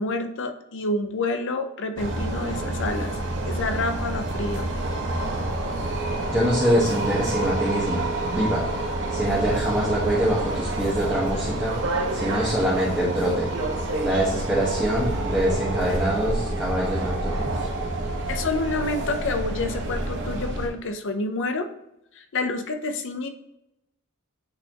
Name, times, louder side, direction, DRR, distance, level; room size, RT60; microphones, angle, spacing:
voice 1, 0.0-3.2 3.4-4.7 18.3-21.7 22.2-23.3, left 2 dB, 60° left, 8 dB, 0.6 m, -28 dB
subway train ride, 2.0-20.7, right 2 dB, 60° right, 1.1 m, -28 dB
voice 2, 6.3-8.7 9.1-11.7 12.1-13.5 14.0-17.7, equal, 10° right, -7 dB, 1.2 m, -24 dB
8.7 x 4.2 x 2.9 m, 0.87 s
head